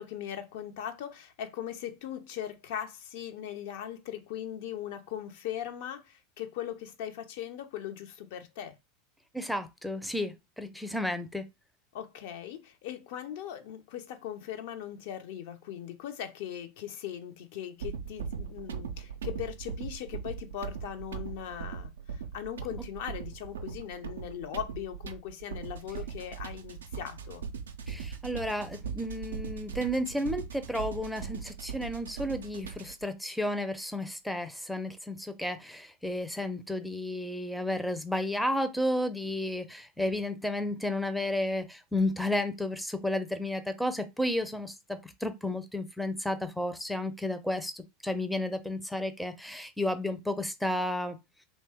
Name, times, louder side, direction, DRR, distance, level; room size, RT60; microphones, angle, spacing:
voice 1, 0.0-8.7 11.9-27.4, left 10 dB, 60° left, 0.4 m, -39 dB
voice 2, 9.3-11.4 27.9-51.2, left 1 dB, ahead, 0.4 m, -32 dB
sound 1, 17.8-33.1, right 7 dB, 75° right, 0.3 m, -40 dB
2.7 x 2.1 x 3.4 m
figure-of-eight pair, 85°, 0 cm